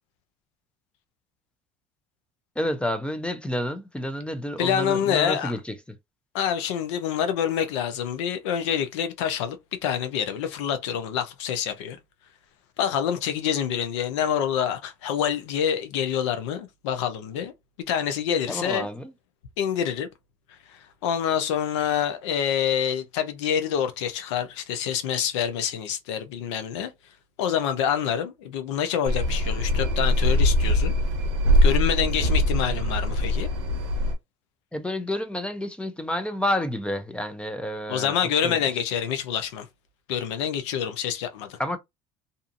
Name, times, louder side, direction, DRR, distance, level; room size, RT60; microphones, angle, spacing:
voice 1, 2.6-5.6 18.5-19.1 34.7-38.1 38.4-38.6 41.6-41.8, left 1 dB, 5° left, 0.5 m, -29 dB
voice 2, 4.6-5.5 6.3-12.0 12.8-17.5 17.9-18.9 19.6-20.1 20.5-26.9 27.4-30.9 31.6-33.5 37.9-39.7 40.1-41.6, left 8 dB, 85° left, 0.6 m, -27 dB
sound 1, 29.1-34.1, left 1 dB, 90° right, 0.6 m, -22 dB
2.6 x 2.5 x 2.5 m
supercardioid pair, 90°, 15 cm